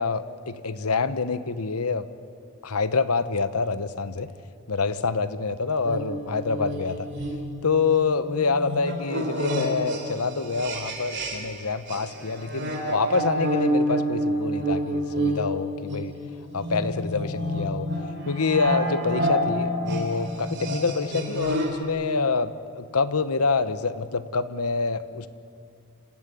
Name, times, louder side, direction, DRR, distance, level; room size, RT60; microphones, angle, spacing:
voice 1, 0.0-2.1 2.6-4.3 4.7-7.1 7.6-16.1 16.5-17.9 18.3-25.3, left 4 dB, 90° left, 12 dB, 1.0 m, -26 dB
sound 1, 5.8-11.6 11.9-21.8, equal, 55° right, 3.5 m, -29 dB
26.5 x 15.5 x 10.0 m, 2.3 s
head